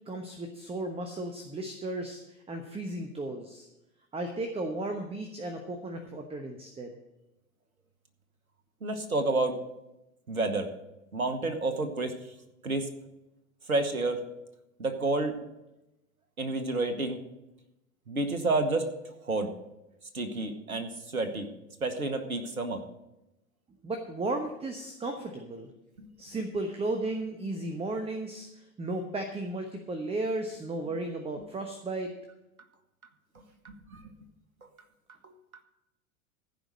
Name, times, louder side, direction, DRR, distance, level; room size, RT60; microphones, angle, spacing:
voice 1, 0.1-3.7 4.1-6.9 23.8-25.7 26.2-32.1, right 2 dB, 15° right, 5 dB, 1.1 m, -35 dB
voice 2, 8.8-9.6 10.3-10.7 11.1-12.2 12.6-12.9 13.7-14.2 14.8-15.4 16.4-17.2 18.1-19.5 20.1-21.5 21.8-22.8 26.0-26.1 33.6-34.0 35.2-35.3, right 2 dB, 90° right, 8 dB, 1.2 m, -30 dB
15.0 x 5.1 x 7.6 m, 0.92 s
figure-of-eight pair, 90°, 41 cm